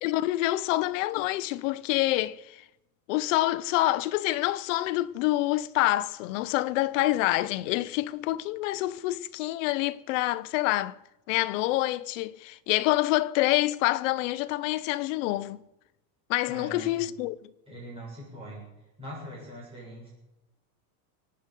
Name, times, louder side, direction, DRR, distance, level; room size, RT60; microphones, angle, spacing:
voice 1, 0.0-2.6 3.1-11.0 11.3-15.6 16.3-17.5, left 17 dB, 55° left, 0.6 m, -27 dB
voice 2, 16.5-17.0 17.7-18.7 19.0-20.1, equal, 10° right, 7.2 m, -42 dB
23.5 x 9.0 x 5.4 m
supercardioid pair, 180°, 48 cm